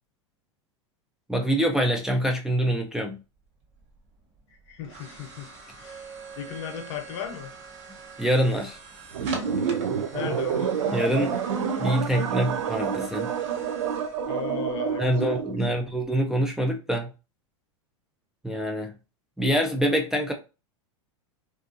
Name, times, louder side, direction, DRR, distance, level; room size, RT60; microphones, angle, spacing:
voice 1, 1.3-3.2 8.2-8.8 10.9-11.4 11.8-13.3 15.0-17.1 18.4-18.9 19.4-20.3, equal, 5° right, 0.3 m, -25 dB
sound 1, 3.4-16.4, right 4 dB, 45° right, 1.0 m, -44 dB
voice 2, 4.7-5.5 5.8-7.5 10.1-10.7 14.3-15.8, left 9 dB, 60° left, 0.8 m, -37 dB
sound 2, 9.1-15.6, right 7 dB, 85° right, 0.4 m, -28 dB
2.6 x 2.4 x 2.4 m
hypercardioid pair, 100°, 16 cm